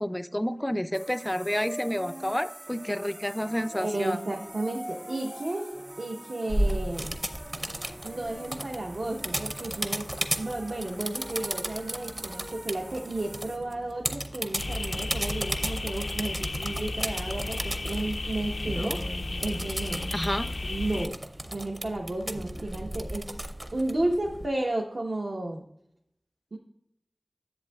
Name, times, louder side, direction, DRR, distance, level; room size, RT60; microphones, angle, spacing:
voice 1, 0.0-4.2 20.1-20.5, equal, 15° left, 14 dB, 0.3 m, -29 dB
sound 1, 0.9-13.6, right 1 dB, 50° right, 1.7 m, -44 dB
voice 2, 3.7-5.7 6.0-7.1 8.0-10.1 10.4-19.0 19.4-20.0 20.4-21.1 21.5-23.3 23.7-25.6 26.5-26.6, right 2 dB, 75° right, -1 dB, 1.0 m, -33 dB
sound 2, 6.5-24.5, right 1 dB, 30° right, 0.7 m, -35 dB
sound 3, 14.6-21.1, left 2 dB, 90° left, 0.4 m, -33 dB
10.5 x 7.7 x 2.3 m, 0.74 s
wide cardioid pair, 45°, 0 cm